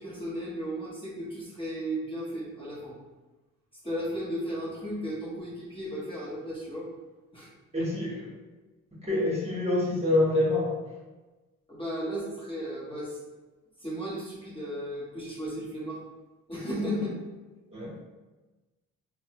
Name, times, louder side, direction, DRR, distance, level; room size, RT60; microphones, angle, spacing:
voice 1, 0.0-2.9 3.8-6.9 7.3-7.5 11.7-13.2 13.8-16.0 16.5-17.1, equal, 20° left, -7 dB, 0.9 m, -35 dB
voice 2, 7.7-8.2 9.0-10.7 16.7-17.0 17.7-18.0, left 2 dB, 20° right, -5 dB, 1.0 m, -26 dB
2.9 x 2.1 x 2.8 m, 1.2 s
cardioid pair, 90°, 30 cm